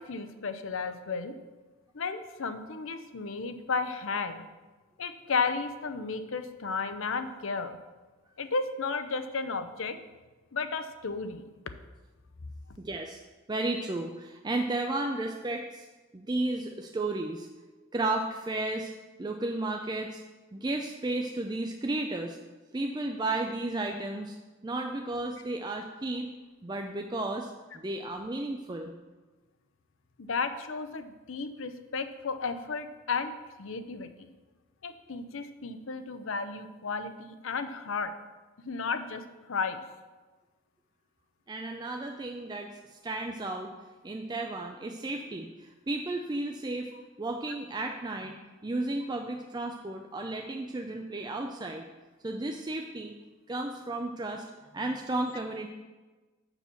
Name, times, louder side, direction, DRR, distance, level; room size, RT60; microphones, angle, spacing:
voice 1, 0.0-1.3 1.9-4.4 5.0-7.8 8.4-10.0 10.5-11.4 30.2-33.3 33.6-34.1 34.8-38.1 38.6-39.2 39.5-39.8, left 4 dB, 65° left, 9 dB, 0.6 m, -33 dB
voice 2, 12.8-13.2 13.5-15.9 16.1-17.5 17.9-18.9 19.2-20.2 20.5-22.4 22.7-24.4 24.6-26.3 26.6-28.9 41.5-43.7 44.0-46.9 47.2-48.3 48.6-51.8 52.2-53.1 53.5-54.4 54.7-55.7, right 2 dB, 20° right, 3 dB, 0.4 m, -33 dB
7.0 x 6.0 x 6.9 m, 1.2 s
head